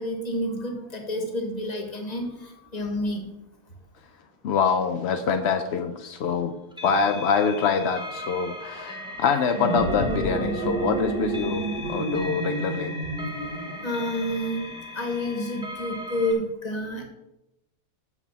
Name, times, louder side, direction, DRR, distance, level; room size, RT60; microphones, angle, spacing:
voice 1, 0.0-3.2 13.8-14.7 14.9-17.0, left 1 dB, 25° left, 3 dB, 1.4 m, -29 dB
voice 2, 4.4-6.6 6.8-12.9, left 6 dB, 70° left, 7 dB, 0.6 m, -25 dB
sound 1, 6.7-16.3, left 1 dB, 5° right, 0.7 m, -38 dB
sound 2, 9.4-14.0, right 2 dB, 30° right, 1.8 m, -29 dB
7.2 x 5.9 x 5.9 m, 0.92 s
omnidirectional pair, 1.7 m